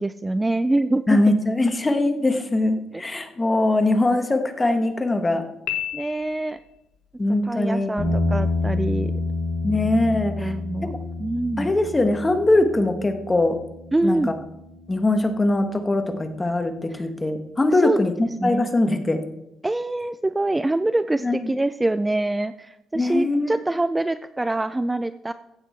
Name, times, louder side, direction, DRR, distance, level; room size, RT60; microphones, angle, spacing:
voice 1, 0.0-1.2 2.9-3.0 5.9-6.6 7.5-9.1 10.3-10.9 11.2-11.7 13.9-14.3 16.9-17.1 17.7-18.0 18.4-18.7 19.6-25.3, right 2 dB, 15° right, 13 dB, 0.4 m, -25 dB
voice 2, 1.1-5.5 7.2-7.9 9.6-10.5 10.9-11.0 11.6-13.6 14.0-14.3 14.9-19.2 21.2-21.4 22.9-23.6, left 2 dB, 20° left, 7 dB, 1.5 m, -21 dB
Piano, 5.7-6.8, left 12 dB, 85° left, 1.2 m, -31 dB
sound 1, 8.0-16.3, left 2 dB, 40° left, 5.1 m, -29 dB
15.0 x 7.9 x 4.5 m, 0.87 s
cardioid pair, 90°, 0 cm